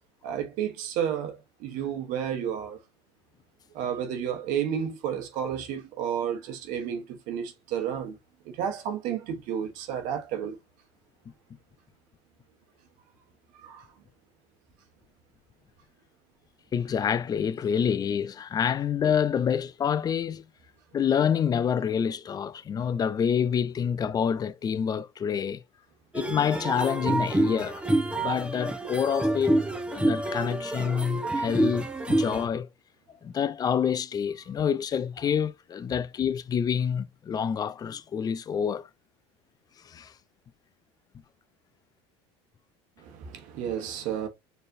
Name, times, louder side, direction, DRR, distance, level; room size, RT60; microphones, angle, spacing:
voice 1, 0.2-2.8 3.7-8.2 8.4-10.6 13.6-13.9 43.0-44.3, right 9 dB, 60° right, 1.1 m, -31 dB
voice 2, 16.7-20.4 20.9-25.6 26.1-27.8 28.2-29.6 29.9-32.7 33.2-38.9 39.9-40.1, left 7 dB, 25° left, 0.4 m, -27 dB
sound 1, 26.1-32.5, right 1 dB, 10° right, 0.8 m, -27 dB
4.3 x 3.2 x 2.6 m
supercardioid pair, 100°, 15 cm